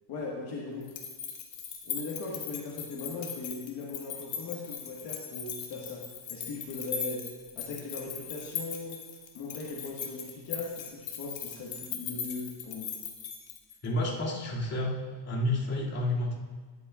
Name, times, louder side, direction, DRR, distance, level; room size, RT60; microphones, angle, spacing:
voice 1, 0.1-1.0 1.8-7.2 7.5-9.0 9.3-12.9, left 3 dB, 55° left, -4 dB, 1.7 m, -39 dB
sound 1, 0.8-13.9, left 7 dB, 70° left, 1.4 m, -39 dB
voice 2, 13.8-16.3, left 1 dB, 30° left, -6 dB, 2.6 m, -30 dB
14.0 x 11.0 x 2.5 m, 1.4 s
cardioid pair, 165°, 49 cm